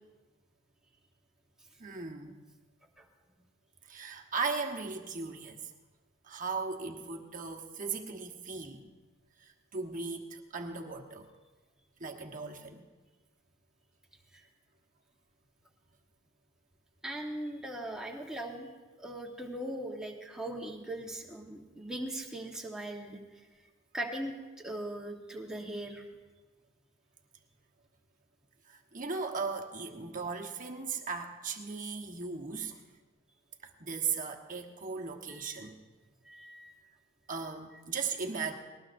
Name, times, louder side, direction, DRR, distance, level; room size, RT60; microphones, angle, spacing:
voice 1, 1.8-2.3 3.8-5.6 6.2-8.9 9.4-11.3 12.0-12.9 28.6-32.8 33.6-35.8 37.3-38.5, right 5 dB, 40° right, 2 dB, 1.2 m, -37 dB
voice 2, 17.0-18.7 19.0-23.2 23.9-24.3 24.6-26.0 35.4-35.7 36.2-36.8, right 1 dB, 5° right, -1 dB, 1.3 m, -39 dB
19.5 x 19.0 x 2.6 m, 1.3 s
head